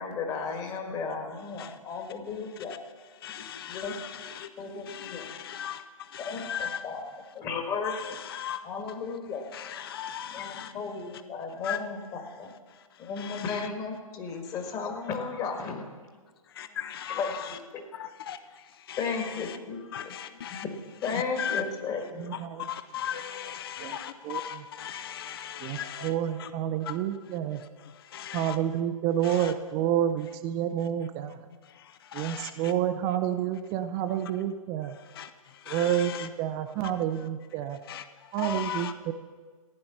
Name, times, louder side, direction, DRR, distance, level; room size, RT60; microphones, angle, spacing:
voice 1, 0.0-2.7 3.4-5.3 6.2-7.1 7.3-8.0 8.6-9.4 10.2-12.5 13.0-15.8 16.7-16.8 17.1-17.8 19.0-20.1 20.5-20.6 21.0-22.3, left 5 dB, 20° left, 1.6 m, -35 dB
voice 2, 3.2-4.5 4.9-5.8 6.1-6.8 7.8-8.6 9.5-10.7 11.6-11.8 13.2-13.6 16.6-17.6 17.9-18.4 18.9-19.5 19.9-20.6 21.0-21.6 22.6-26.1 26.4-26.5 26.9-27.0 28.1-28.6 29.2-29.5 32.1-32.7 35.2-35.3 35.7-36.3 37.9-38.0 38.4-38.9, left 9 dB, 40° left, 0.6 m, -37 dB
voice 3, 22.2-22.7 23.8-24.0 24.2-24.4 25.6-27.6 28.3-31.4 32.1-35.0 35.7-37.8 38.3-39.1, right 10 dB, 20° right, 0.5 m, -29 dB
15.0 x 9.7 x 5.8 m
figure-of-eight pair, 130°, 18 cm